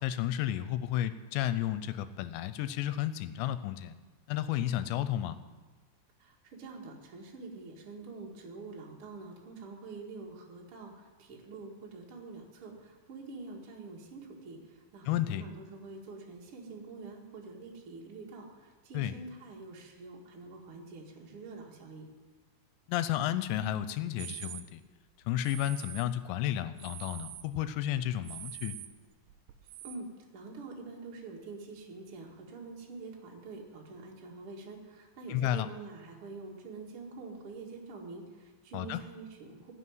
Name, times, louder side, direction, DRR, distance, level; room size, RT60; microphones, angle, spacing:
voice 1, 0.0-4.0 4.3-5.4 15.1-15.4 18.9-19.1 22.9-24.8 25.3-28.8 35.3-35.7 38.7-39.0, left 12 dB, 90° left, 13 dB, 2.8 m, -32 dB
voice 2, 6.2-22.1 29.8-30.1 30.3-39.7, right 3 dB, 45° right, -2 dB, 2.0 m, -46 dB
sound 1, 24.2-24.7 25.4-26.1 26.5-27.5 27.8-30.0, right 13 dB, 85° right, 2.1 m, -45 dB
15.5 x 6.2 x 9.4 m, 1.3 s
omnidirectional pair, 5.1 m